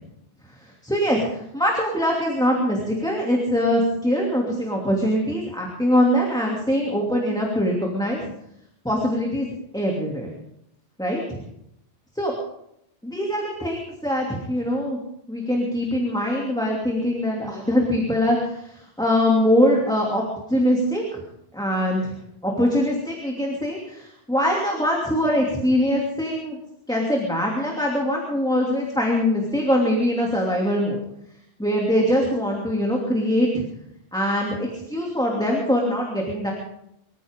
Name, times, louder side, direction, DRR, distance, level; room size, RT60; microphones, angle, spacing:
voice 1, 0.6-8.2 8.8-9.5 9.7-10.3 11.0-11.4 12.1-12.3 13.0-15.0 15.3-20.2 20.5-21.2 21.5-22.2 22.4-26.6 26.9-31.0 31.6-33.6 34.1-36.5, equal, 5° left, -2 dB, 2.7 m, -23 dB
24.5 x 15.0 x 3.7 m, 0.78 s
omnidirectional pair, 1.2 m